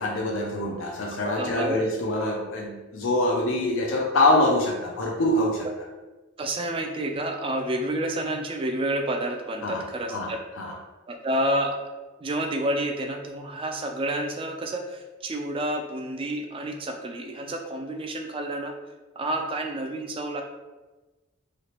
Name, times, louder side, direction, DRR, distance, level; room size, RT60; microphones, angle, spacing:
voice 1, 0.0-5.7 9.6-10.7, left 1 dB, 80° left, 0 dB, 0.4 m, -25 dB
voice 2, 1.2-1.8 6.4-10.4 11.1-11.8 12.2-18.7 19.2-20.4, right 1 dB, 25° right, 4 dB, 0.3 m, -29 dB
3.1 x 2.8 x 2.8 m, 1.2 s
head